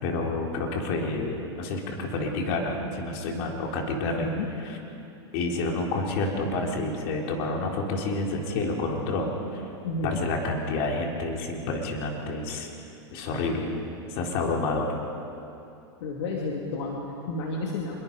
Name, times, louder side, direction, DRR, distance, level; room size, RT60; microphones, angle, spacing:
voice 1, 0.0-4.3 4.6-4.8 5.3-9.6 10.0-12.7 13.1-13.8 14.1-14.9, left 2 dB, 55° left, 1 dB, 3.8 m, -29 dB
voice 2, 4.0-4.5 9.8-10.2 16.0-18.0, left 2 dB, 70° left, -1 dB, 2.7 m, -31 dB
25.5 x 22.5 x 5.4 m, 2.7 s
hypercardioid pair, 130°, 15 cm